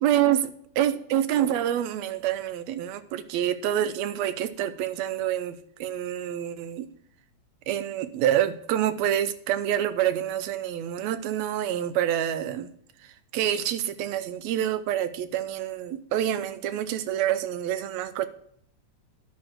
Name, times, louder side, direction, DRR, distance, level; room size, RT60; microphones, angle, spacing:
voice 1, 0.0-6.9 7.7-12.7 13.3-18.3, right 11 dB, 80° right, 1.7 m, -27 dB
10.5 x 6.2 x 6.1 m
omnidirectional pair, 3.5 m